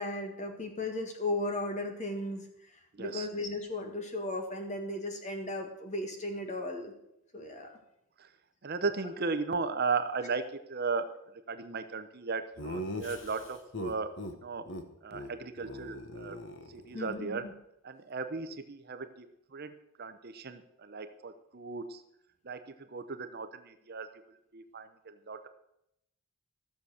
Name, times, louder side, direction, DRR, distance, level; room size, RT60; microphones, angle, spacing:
voice 1, 0.0-6.9 7.3-7.8 16.9-17.5, left 2 dB, 30° left, 4 dB, 1.8 m, -36 dB
voice 2, 8.6-10.4 10.7-11.1 11.5-14.1 14.4-14.6 15.0-16.4 16.7-17.4 17.8-19.3 19.5-19.7 20.0-22.0 22.4-22.6 22.9-24.1 24.5-24.9 25.3-25.5, right 4 dB, 45° right, 10 dB, 0.7 m, -35 dB
Laughter, 12.6-14.3 14.7-14.8 15.1-15.3 15.6-17.1, equal, 55° left, 1.1 m, -40 dB
14.0 x 7.0 x 6.4 m, 0.81 s
head